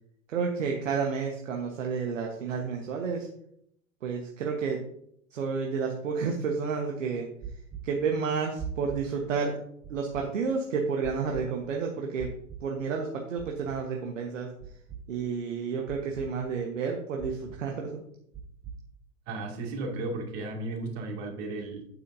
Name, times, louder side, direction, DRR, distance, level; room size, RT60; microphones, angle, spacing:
voice 1, 0.3-3.3 4.0-4.8 5.3-7.3 7.8-9.6 9.9-12.3 12.6-14.5 15.1-18.0, right 5 dB, 60° right, 1 dB, 1.2 m, -30 dB
sound 1, 7.4-7.8 8.6-9.0 9.8-10.2 11.0-11.4 12.2-12.6 13.4-13.8 14.6-15.0 15.9-16.3 17.2-17.6 18.3-18.8, right 8 dB, 10° right, 0.8 m, -40 dB
voice 2, 19.3-21.8, right 2 dB, 45° right, 1 dB, 2.4 m, -35 dB
9.1 x 8.3 x 2.7 m, 0.72 s
figure-of-eight pair, 95°, 42 cm